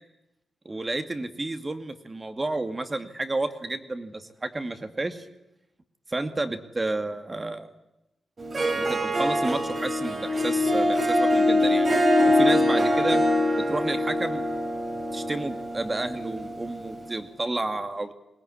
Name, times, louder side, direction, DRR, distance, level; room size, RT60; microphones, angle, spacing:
voice 1, 0.6-5.3 6.1-7.7 8.8-11.9 12.3-13.2 13.7-14.4 15.1-18.1, right 2 dB, 30° right, 9 dB, 2.4 m, -31 dB
Harp, 8.4-17.0, left 1 dB, 45° right, 3.8 m, -24 dB
22.0 x 18.5 x 9.9 m, 0.91 s
cardioid pair, 70°, 0 cm